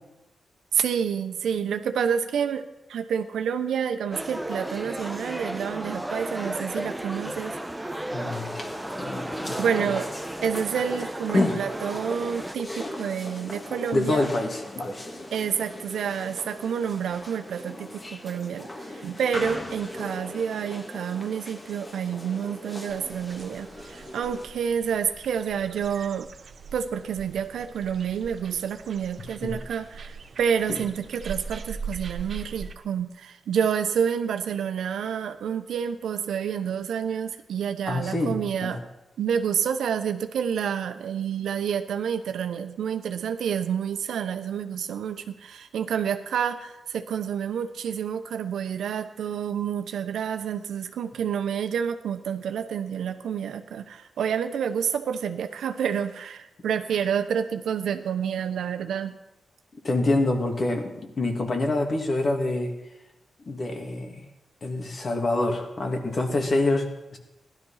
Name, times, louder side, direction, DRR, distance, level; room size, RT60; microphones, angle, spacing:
voice 1, 0.7-2.6 2.9-7.6 9.6-10.1 10.4-14.3 15.3-26.3 26.7-38.9 39.2-59.1, right 8 dB, 90° right, 8 dB, 1.0 m, -29 dB
sound 1, 4.1-12.5, right 1 dB, 5° right, 1.0 m, -34 dB
voice 2, 8.1-8.7 9.0-9.9 11.3-11.6 13.9-15.0 29.4-29.5 30.7-30.8 37.9-38.4 38.6-38.8 59.8-62.7 63.4-64.2 64.6-67.2, left 2 dB, 45° left, 3 dB, 2.7 m, -26 dB
sound 2, 8.3-24.5, left 1 dB, 25° left, 2.0 m, -39 dB
sound 3, 22.9-32.7, right 5 dB, 60° right, 0.9 m, -41 dB
16.0 x 12.0 x 5.8 m, 0.94 s
cardioid pair, 80°, 0 cm